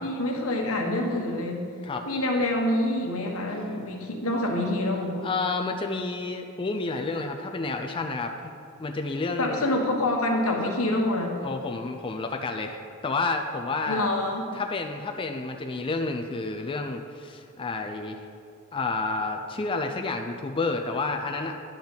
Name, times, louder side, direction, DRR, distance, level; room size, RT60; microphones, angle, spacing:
voice 1, 0.0-1.6 2.1-5.2 9.4-11.4 13.9-14.4, left 1 dB, 70° left, 1 dB, 1.3 m, -26 dB
voice 2, 5.2-8.5 8.8-9.6 11.4-14.1 14.5-18.2 18.7-21.5, left 3 dB, 25° left, 4 dB, 0.4 m, -30 dB
10.5 x 3.9 x 7.2 m, 2.4 s
head